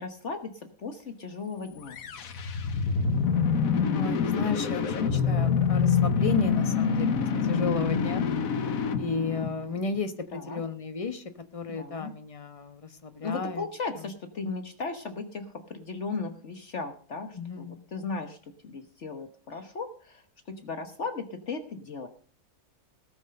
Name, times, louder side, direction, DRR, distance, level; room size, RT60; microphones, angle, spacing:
voice 1, 0.0-2.0 10.3-10.6 11.7-12.1 13.2-22.1, left 4 dB, 55° left, 7 dB, 1.4 m, -36 dB
sound 1, 1.8-10.0, left 6 dB, 70° left, 1.4 m, -26 dB
voice 2, 3.9-8.3 9.0-13.7 14.0-14.1 17.3-17.9, left 4 dB, 25° left, 8 dB, 1.1 m, -33 dB
18.0 x 6.3 x 6.4 m, 0.42 s
omnidirectional pair, 1.5 m